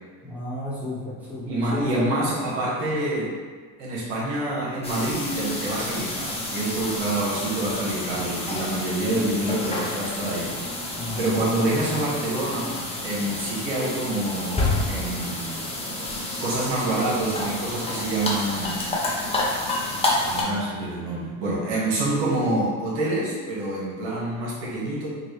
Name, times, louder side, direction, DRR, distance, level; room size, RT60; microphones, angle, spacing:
voice 1, 0.2-2.3 10.9-12.0, left 1 dB, 5° right, -9 dB, 1.3 m, -33 dB
voice 2, 1.4-3.3 3.8-10.5 11.2-12.7 13.0-15.6 16.4-18.8 20.2-25.1, right 2 dB, 70° right, -7 dB, 1.4 m, -27 dB
sound 1, 4.8-20.4, left 2 dB, 15° left, 0.7 m, -29 dB
3.8 x 2.5 x 3.2 m, 1.5 s
hypercardioid pair, 85°, 46 cm